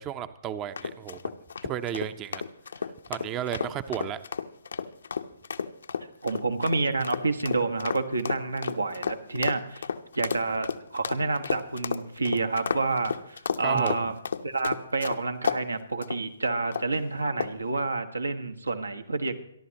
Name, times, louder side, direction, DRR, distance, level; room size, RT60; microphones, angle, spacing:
voice 1, 0.0-1.4 1.6-2.4 2.8-4.2 13.6-14.1, right 10 dB, 20° right, 12 dB, 0.7 m, -34 dB
sound 1, 0.8-15.6 16.0-16.2 16.7-17.0 17.4-17.7, left 6 dB, 65° left, 0.9 m, -32 dB
voice 2, 6.2-9.9 10.1-14.1 14.4-19.4, right 3 dB, 80° right, 8 dB, 1.5 m, -29 dB
28.0 x 11.5 x 3.0 m, 0.76 s
figure-of-eight pair, 130°, 0 cm